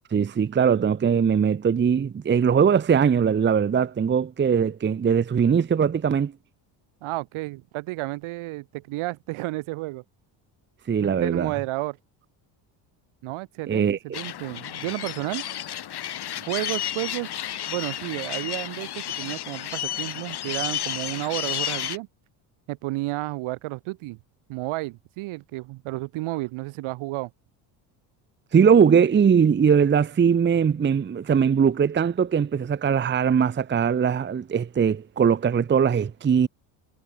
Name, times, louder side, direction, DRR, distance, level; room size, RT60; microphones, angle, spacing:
voice 1, 0.1-6.3 10.9-11.5 13.7-14.2 28.5-36.5, right 7 dB, 20° right, 0.8 m, -21 dB
voice 2, 7.0-10.0 11.0-12.0 13.2-15.4 16.5-17.3 17.7-22.1 22.7-24.2 24.5-27.3, right 20 dB, 70° right, 2.2 m, -31 dB
sound 1, 14.1-22.0, left 11 dB, 50° left, 3.5 m, -32 dB
supercardioid pair, 90°, 50 cm